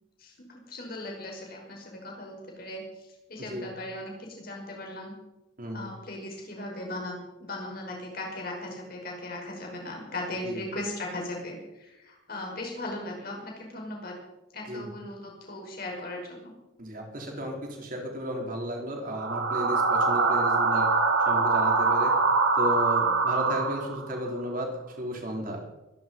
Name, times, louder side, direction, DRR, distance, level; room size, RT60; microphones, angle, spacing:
voice 1, 0.2-5.1 5.7-14.1 14.5-16.5, left 1 dB, 50° left, 0 dB, 5.8 m, -38 dB
voice 2, 3.4-3.7 5.6-5.9 10.4-10.6 14.7-14.9 16.8-20.9 21.3-22.1 22.6-25.6, equal, 45° right, 1 dB, 4.3 m, -33 dB
sound 1, 19.1-24.2, right 4 dB, 75° right, 2.2 m, -24 dB
24.0 x 11.0 x 5.5 m, 0.96 s
head